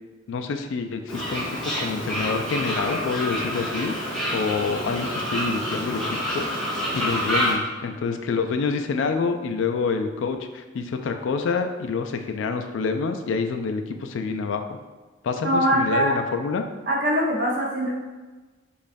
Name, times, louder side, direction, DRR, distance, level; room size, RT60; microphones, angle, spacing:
voice 1, 0.3-6.0 6.3-6.5 6.9-14.8 15.2-16.6, left 4 dB, 75° left, 6 dB, 0.3 m, -27 dB
Fowl, 1.1-7.5, equal, 5° left, 0.9 m, -27 dB
voice 2, 15.4-16.1 16.9-17.9, equal, 50° right, -3 dB, 0.8 m, -22 dB
5.0 x 2.4 x 2.6 m, 1.3 s
head